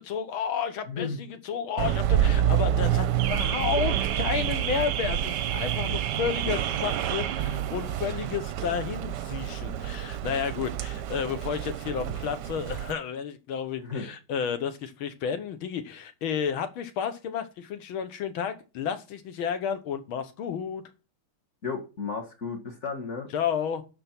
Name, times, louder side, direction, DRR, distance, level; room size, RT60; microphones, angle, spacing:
voice 1, 0.0-20.8 23.3-23.8, left 7 dB, 70° left, 1.8 m, -31 dB
voice 2, 0.9-1.3 12.0-12.2 13.8-14.1 21.6-23.3, left 5 dB, 35° left, 1.6 m, -34 dB
Car / Alarm, 1.8-12.9, right 10 dB, 70° right, 1.1 m, -28 dB
12.0 x 4.5 x 5.9 m
omnidirectional pair, 2.4 m